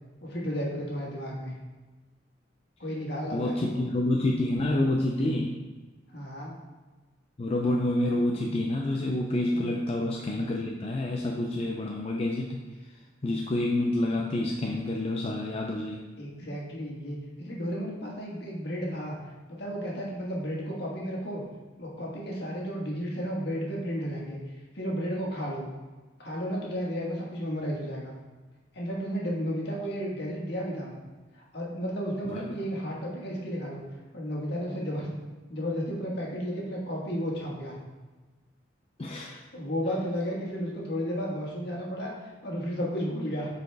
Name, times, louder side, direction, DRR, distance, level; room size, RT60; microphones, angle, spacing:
voice 1, 0.2-1.5 2.8-3.8 6.1-6.6 9.5-9.8 16.2-19.2 19.5-21.4 21.8-24.4 24.7-25.7 26.2-28.1 28.7-30.9 31.3-33.8 34.1-35.1 35.5-37.8 39.5-43.5, equal, 60° left, -3 dB, 1.6 m, -33 dB
voice 2, 3.3-5.5 7.4-12.6 13.2-16.0 39.0-39.4, left 1 dB, 30° left, 0 dB, 0.4 m, -28 dB
8.0 x 4.2 x 3.4 m, 1.3 s
head